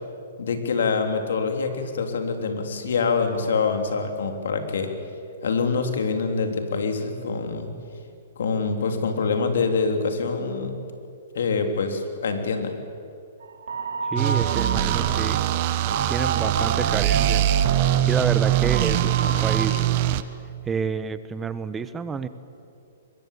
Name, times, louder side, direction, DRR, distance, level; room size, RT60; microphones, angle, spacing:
voice 1, 0.4-4.9 5.4-7.7 8.4-10.7 11.3-12.7, left 4 dB, 75° left, 5 dB, 3.5 m, -25 dB
sound 1, 13.4-19.7, right 4 dB, 85° right, 2.1 m, -30 dB
voice 2, 14.1-15.4 16.1-17.5 18.0-19.8 20.6-22.3, right 5 dB, 15° right, 13 dB, 1.0 m, -29 dB
sound 2, 14.2-20.2, right 13 dB, 45° right, 1.1 m, -22 dB
24.0 x 21.5 x 8.6 m, 2.6 s
hypercardioid pair, 145°, 0 cm